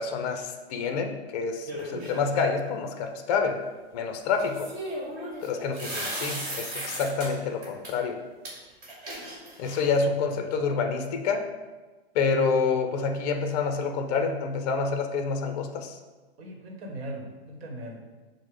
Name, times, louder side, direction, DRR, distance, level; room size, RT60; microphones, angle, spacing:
voice 1, 0.0-3.6 3.9-4.7 5.4-8.2 9.6-11.4 12.1-16.0, left 5 dB, 40° left, 5 dB, 0.5 m, -27 dB
sound 1, 1.7-2.4 4.4-7.3 7.6-7.9 8.4-8.5 8.8-10.0, right 1 dB, 30° right, 1.5 m, -36 dB
voice 2, 16.4-18.1, right 1 dB, 65° right, 2 dB, 1.1 m, -39 dB
6.2 x 2.1 x 3.7 m, 1.3 s
hypercardioid pair, 130°, 33 cm